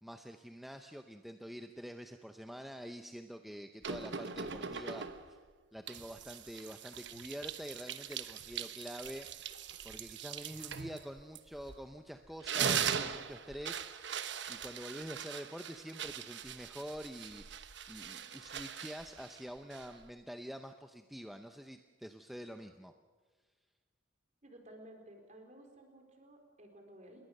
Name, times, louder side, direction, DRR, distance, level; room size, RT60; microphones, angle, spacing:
voice 1, 0.0-5.4 5.7-13.9 14.5-22.9, equal, ahead, 6 dB, 0.6 m, -47 dB
sound 1, 3.8-5.4 5.9-11.9 12.3-20.1, right 7 dB, 60° right, 1.1 m, -40 dB
voice 2, 24.4-27.2, right 1 dB, 35° right, 4 dB, 4.2 m, -55 dB
28.0 x 21.5 x 6.6 m, 1.4 s
head